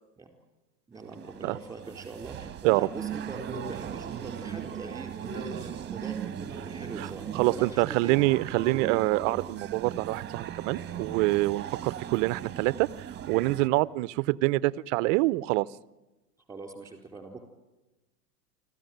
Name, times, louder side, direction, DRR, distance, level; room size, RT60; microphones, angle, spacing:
voice 1, 0.9-8.9 16.5-17.4, right 3 dB, 5° right, 4 dB, 4.1 m, -43 dB
sound 1, 0.9-13.7, right 8 dB, 20° right, 1.6 m, -38 dB
voice 2, 7.3-12.9 13.3-15.7, right 20 dB, 50° right, 19 dB, 0.7 m, -26 dB
25.0 x 15.0 x 9.3 m, 1.1 s
hypercardioid pair, 120°, 47 cm